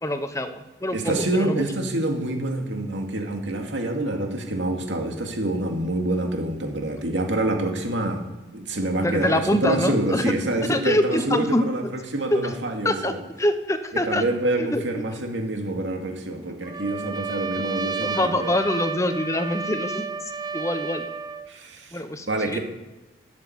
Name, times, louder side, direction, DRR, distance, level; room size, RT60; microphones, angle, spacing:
voice 1, 0.0-1.6 9.0-10.3 10.7-11.6 12.3-12.4 12.8-13.1 13.4-14.2 14.6-14.8 17.3-17.4 18.0-20.1 20.5-21.1 21.9-22.6, left 1 dB, 15° left, 9 dB, 0.9 m, -25 dB
voice 2, 0.9-8.2 8.5-13.2 13.9-18.5 21.5-22.0 22.3-22.6, right 1 dB, 85° right, 2 dB, 2.3 m, -26 dB
Trumpet, 16.6-21.5, right 5 dB, 20° right, 0.5 m, -31 dB
13.0 x 7.5 x 7.9 m, 1.1 s
head